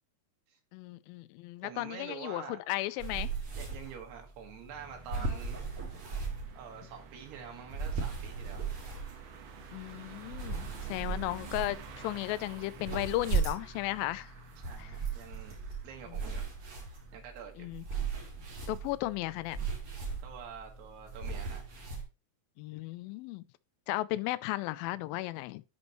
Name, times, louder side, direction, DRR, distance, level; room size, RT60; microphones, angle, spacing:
voice 1, 0.7-3.3 9.7-14.3 14.8-14.9 16.1-16.2 17.6-17.8 18.7-19.7 22.6-23.4 23.9-25.6, left 17 dB, 85° left, 2.1 m, -35 dB
voice 2, 1.6-2.6 3.6-5.6 6.6-8.6 14.6-15.6 15.8-16.5 17.1-17.7 20.2-21.6, right 7 dB, 85° right, 3.8 m, -46 dB
sound 1, 3.0-22.0, right 5 dB, 40° right, 2.9 m, -38 dB
sound 2, 4.7-17.2, right 5 dB, 65° right, 2.6 m, -52 dB
12.5 x 5.4 x 3.1 m
omnidirectional pair, 4.6 m